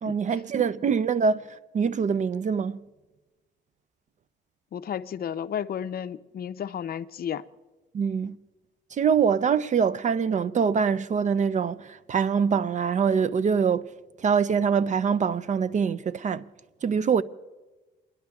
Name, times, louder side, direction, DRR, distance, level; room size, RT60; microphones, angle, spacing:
voice 1, 0.0-2.8 7.9-8.4 8.9-13.9 14.2-16.4 16.8-17.2, right 6 dB, 40° right, 0.4 m, -24 dB
voice 2, 4.7-7.4, left 9 dB, 50° left, 0.5 m, -32 dB
30.0 x 10.5 x 2.3 m
cardioid pair, 90°, 20 cm